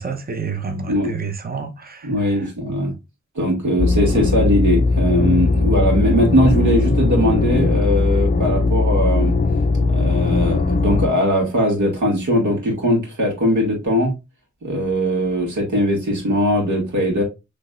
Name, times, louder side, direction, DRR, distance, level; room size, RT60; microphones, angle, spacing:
voice 1, 0.0-2.5, right 5 dB, 30° right, 0.8 m, -29 dB
voice 2, 2.0-2.9 3.4-9.3 9.8-14.1 14.6-17.2, equal, 75° right, 2.1 m, -20 dB
sound 1, 3.8-11.1, left 3 dB, 30° left, 0.4 m, -18 dB
6.1 x 3.3 x 2.4 m
wide cardioid pair, 155°, 30 cm